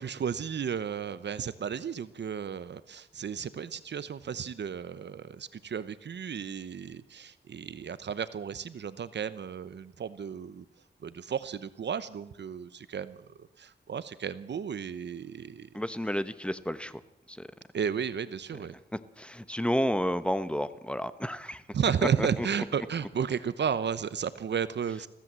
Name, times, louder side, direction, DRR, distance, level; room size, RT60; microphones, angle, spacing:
voice 1, 0.0-10.6 11.0-13.2 13.6-15.7 17.7-18.7 21.7-25.1, right 7 dB, 70° right, 14 dB, 0.9 m, -33 dB
voice 2, 15.7-17.0 17.3-17.5 19.2-21.6 22.2-22.3, equal, 5° left, 14 dB, 1.0 m, -31 dB
22.0 x 15.5 x 7.6 m, 0.84 s
wide cardioid pair, 105°, 19 cm